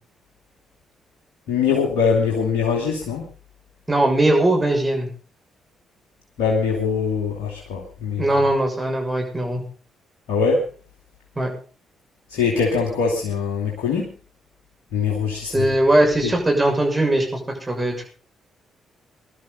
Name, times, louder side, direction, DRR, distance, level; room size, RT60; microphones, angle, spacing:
voice 1, 1.5-3.2 6.4-8.3 10.3-10.6 12.3-14.1 14.9-15.7 16.2-16.4, left 5 dB, 70° left, -2 dB, 2.6 m, -22 dB
voice 2, 3.9-5.1 8.2-9.6 11.4-11.5 15.5-18.0, right 1 dB, 20° right, 1 dB, 6.5 m, -20 dB
21.5 x 12.0 x 4.0 m, 0.38 s
hypercardioid pair, 40°, 0 cm